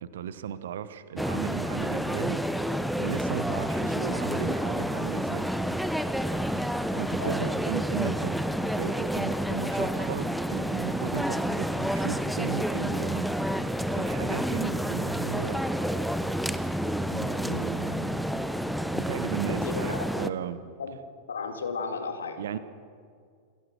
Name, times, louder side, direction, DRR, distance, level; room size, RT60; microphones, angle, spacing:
voice 1, 0.0-5.5 6.3-8.4 8.8-13.3 13.7-15.6 17.1-18.2 18.9-20.6 22.4-22.6, right 9 dB, 60° right, 14 dB, 1.0 m, -36 dB
sound 1, 1.2-20.3, equal, ahead, 0.8 m, -29 dB
voice 2, 19.5-20.1 20.8-21.0 21.3-22.4, left 4 dB, 70° left, 7 dB, 2.1 m, -34 dB
28.5 x 17.0 x 6.5 m, 2.2 s
figure-of-eight pair, 90°, 0 cm